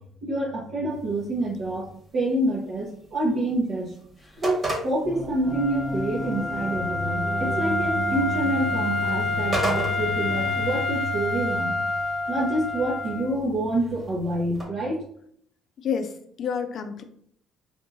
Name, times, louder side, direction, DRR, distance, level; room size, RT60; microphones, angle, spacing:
voice 1, 0.2-1.8 2.1-3.9 4.4-11.7 12.3-15.0, right 1 dB, 55° right, -5 dB, 0.8 m, -27 dB
sound 1, 0.9-14.6, right 2 dB, 35° right, 1.3 m, -38 dB
sound 2, 5.0-11.2, equal, 15° right, 0.5 m, -35 dB
Wind instrument woodwind instrument, 5.5-13.3, left 2 dB, 15° left, 0.9 m, -28 dB
voice 2, 15.8-17.0, left 7 dB, 55° left, 8 dB, 0.4 m, -29 dB
3.5 x 2.6 x 2.6 m, 0.65 s
hypercardioid pair, 60°, 0 cm